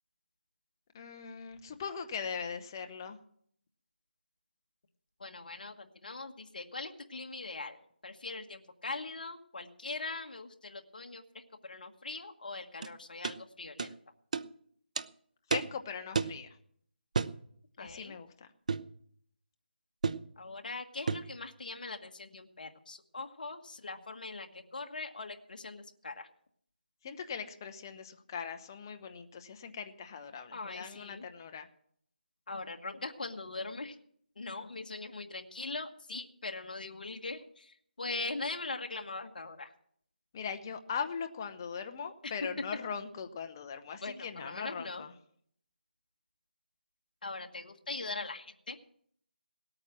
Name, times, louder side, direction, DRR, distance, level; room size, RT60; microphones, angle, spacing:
voice 1, 0.9-3.2 15.5-16.6 17.8-18.5 27.0-31.7 40.3-45.1, left 6 dB, 20° left, 7 dB, 0.8 m, -40 dB
voice 2, 5.2-13.9 17.8-18.1 20.4-26.3 30.5-31.3 32.5-34.0 34.3-39.7 44.0-45.0 47.2-48.8, left 3 dB, 55° left, 4 dB, 1.5 m, -41 dB
sound 1, 12.8-12.9 13.2-13.4 13.8-13.9 14.3-14.5 15.0-15.1 15.5-15.7 16.1-16.4 17.1-17.4 18.7-18.9 20.0-20.3 21.1-21.3, right 5 dB, 45° right, 0.5 m, -32 dB
18.0 x 8.9 x 6.1 m, 0.66 s
figure-of-eight pair, 170°, 6 cm